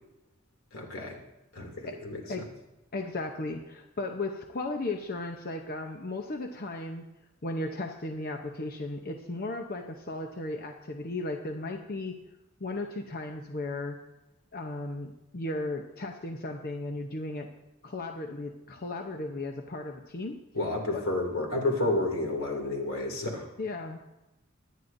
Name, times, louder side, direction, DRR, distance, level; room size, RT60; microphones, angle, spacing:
voice 1, 0.7-1.2 1.5-2.4 20.5-23.4, left 2 dB, 90° left, 0 dB, 2.6 m, -30 dB
voice 2, 2.9-7.0 7.4-12.2 12.6-14.0 14.5-17.5 17.8-20.4 20.9-21.1 23.6-24.0, left 2 dB, 45° left, 3 dB, 0.8 m, -35 dB
23.5 x 9.4 x 2.7 m, 0.94 s
head